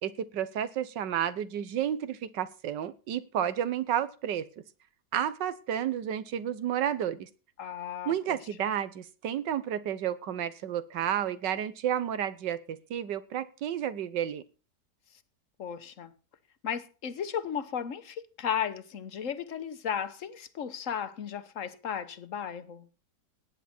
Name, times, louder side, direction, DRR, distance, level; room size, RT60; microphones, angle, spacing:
voice 1, 0.0-4.5 5.1-7.3 8.0-14.4, right 10 dB, 85° right, 1.6 m, -31 dB
voice 2, 7.6-8.1 15.6-16.1 16.6-22.9, left 8 dB, 50° left, 1.3 m, -35 dB
17.5 x 9.9 x 4.4 m
omnidirectional pair, 1.8 m